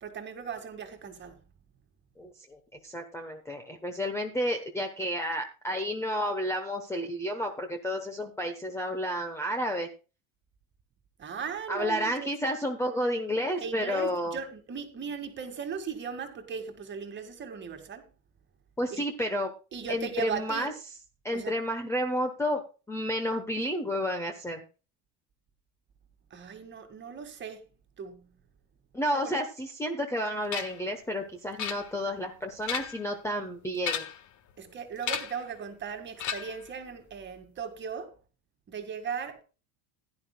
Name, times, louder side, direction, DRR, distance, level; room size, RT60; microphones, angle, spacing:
voice 1, 0.0-1.4 11.2-12.3 13.6-18.1 18.9-19.1 19.7-20.7 21.3-21.5 26.3-27.6 28.0-28.3 29.2-29.3 34.6-38.1 38.7-39.4, right 6 dB, 25° right, 1.9 m, -38 dB
voice 2, 2.2-9.9 11.7-14.4 18.8-19.5 19.9-20.7 21.2-22.6 22.9-24.6 28.9-34.1, equal, 5° left, 0.9 m, -31 dB
sound 1, 30.5-30.9 31.6-32.2 32.5-33.1 33.8-34.3 35.0-35.5 36.2-36.7, left 9 dB, 40° left, 1.5 m, -34 dB
16.0 x 11.0 x 2.3 m
cardioid pair, 180°, 44 cm